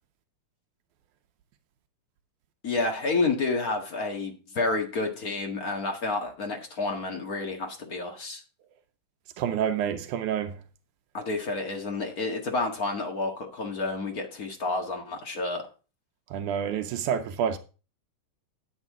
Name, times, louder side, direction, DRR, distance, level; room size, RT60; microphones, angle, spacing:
voice 1, 2.6-8.4 11.1-15.6, left 3 dB, 35° left, 1.7 m, -30 dB
voice 2, 9.4-10.6 16.3-17.6, right 8 dB, 85° right, 2.2 m, -28 dB
8.9 x 8.8 x 3.7 m
omnidirectional pair, 3.5 m